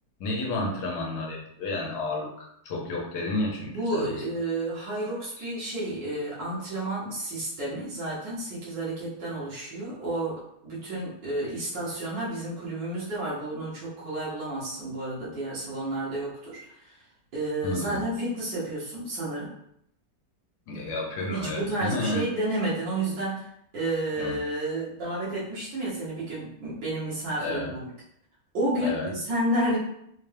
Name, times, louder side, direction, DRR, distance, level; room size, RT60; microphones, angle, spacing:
voice 1, 0.2-4.2 5.4-5.5 17.6-18.0 20.7-22.2 24.2-24.3 27.4-27.7 28.8-29.1, left 2 dB, 70° left, -1 dB, 1.4 m, -31 dB
voice 2, 3.7-16.9 17.3-19.5 21.3-23.5 23.7-27.9 28.5-29.8, right 1 dB, 85° right, -9 dB, 1.9 m, -31 dB
4.2 x 2.2 x 3.3 m, 0.73 s
omnidirectional pair, 1.9 m